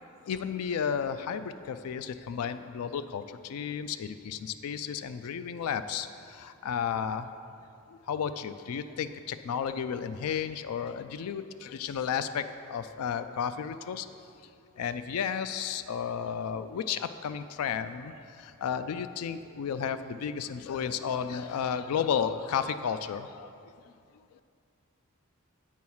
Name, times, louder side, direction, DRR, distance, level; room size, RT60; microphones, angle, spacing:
voice 1, 0.2-7.3 7.9-14.1 14.8-23.6 23.8-23.9, left 7 dB, 80° left, 11 dB, 0.3 m, -33 dB
8.4 x 4.6 x 5.5 m, 2.4 s
head